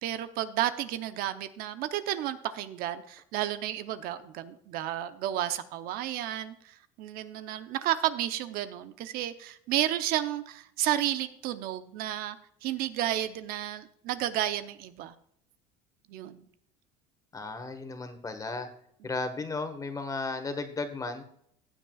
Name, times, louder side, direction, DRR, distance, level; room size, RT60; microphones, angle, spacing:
voice 1, 0.0-15.1 16.1-16.4, right 12 dB, 65° right, 11 dB, 0.8 m, -32 dB
voice 2, 17.3-18.7 19.0-21.2, left 3 dB, 20° left, 8 dB, 1.5 m, -34 dB
15.5 x 8.5 x 2.4 m, 0.69 s
supercardioid pair, 110°, 16 cm